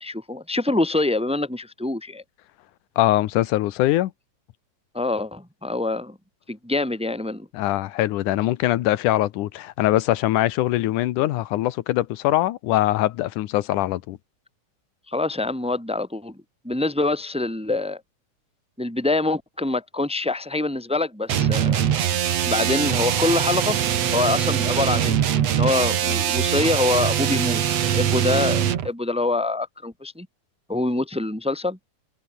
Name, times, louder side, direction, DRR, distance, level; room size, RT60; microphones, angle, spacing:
voice 1, 0.0-2.2 4.9-6.2 6.5-7.5 15.1-18.0 18.8-21.9 22.4-23.8 24.1-25.2 25.5-30.3 30.7-31.8, left 2 dB, ahead, 1.9 m, -25 dB
voice 2, 3.0-4.1 7.5-14.2, left 15 dB, 90° left, 2.4 m, -22 dB
sound 1, 21.3-28.9, right 9 dB, 60° right, 2.6 m, -22 dB
open air
omnidirectional pair, 3.6 m